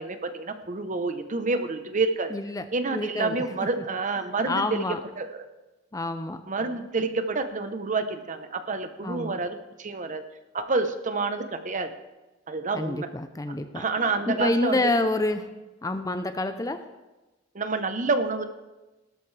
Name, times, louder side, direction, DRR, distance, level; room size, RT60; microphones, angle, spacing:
voice 1, 0.0-2.3 2.7-4.8 5.2-5.3 6.5-10.2 10.5-11.9 12.5-13.1 13.7-14.9 17.5-18.4, right 3 dB, 40° right, 9 dB, 0.9 m, -28 dB
voice 2, 2.3-2.7 2.9-3.4 4.5-5.0 5.9-6.5 9.0-9.4 12.7-13.8 14.3-15.6 15.8-16.9, left 2 dB, 15° left, 10 dB, 0.5 m, -28 dB
17.5 x 13.0 x 3.3 m, 1.1 s
head